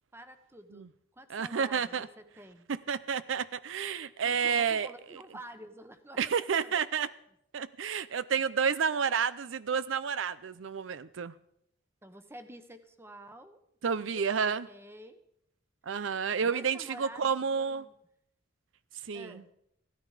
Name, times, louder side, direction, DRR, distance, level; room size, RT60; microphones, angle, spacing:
voice 1, 0.1-2.7 4.2-7.1 12.0-13.6 14.0-14.2 14.7-15.2 16.4-17.9 19.1-19.5, right 1 dB, 15° right, 1.1 m, -49 dB
voice 2, 1.3-2.1 2.7-4.9 6.2-7.1 7.5-11.3 13.8-14.7 15.9-17.8 19.1-19.4, right 6 dB, 85° right, 0.5 m, -30 dB
16.0 x 13.0 x 4.9 m
head